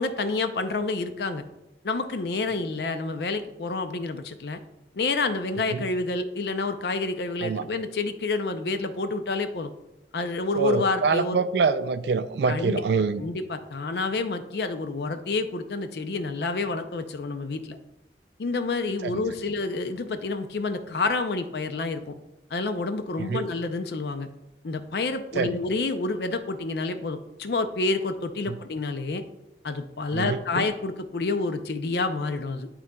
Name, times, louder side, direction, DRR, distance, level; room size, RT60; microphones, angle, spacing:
voice 1, 0.0-1.4 1.8-4.6 4.9-9.7 10.1-11.4 12.5-12.8 13.2-17.8 18.4-22.1 22.5-24.3 24.6-29.2 29.6-32.7, left 3 dB, 65° left, 0.5 m, -28 dB
voice 2, 10.6-13.2 19.0-19.2 23.3-23.5 25.4-25.6 28.5-28.6 30.1-30.7, right 4 dB, 70° right, 0.4 m, -25 dB
11.5 x 3.8 x 2.3 m
head